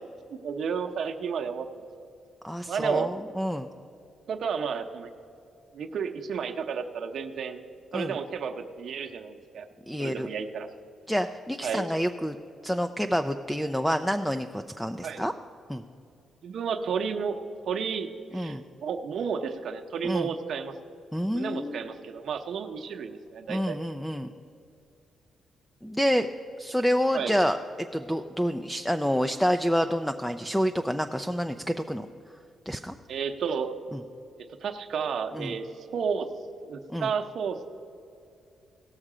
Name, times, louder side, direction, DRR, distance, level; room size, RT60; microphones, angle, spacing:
voice 1, 0.3-1.9 2.7-3.1 4.3-5.1 5.7-7.6 7.9-9.7 10.0-10.7 11.6-12.0 15.0-15.3 16.4-17.4 17.7-20.7 21.3-23.8 27.1-27.3 33.1-33.7 34.6-35.7 35.9-36.3 36.6-37.7, right 6 dB, 65° right, 5 dB, 0.8 m, -32 dB
voice 2, 2.4-3.7 7.9-8.1 9.9-10.3 11.1-12.4 12.6-15.3 15.7-15.8 18.3-18.6 20.0-20.3 21.1-21.8 23.5-24.3 25.8-26.3 26.6-27.6 27.9-32.1 32.7-32.9 33.9-34.0 35.3-35.5 36.9-37.1, equal, 5° left, 8 dB, 0.3 m, -28 dB
17.5 x 6.5 x 4.9 m, 2.5 s
cardioid pair, 115°, 0 cm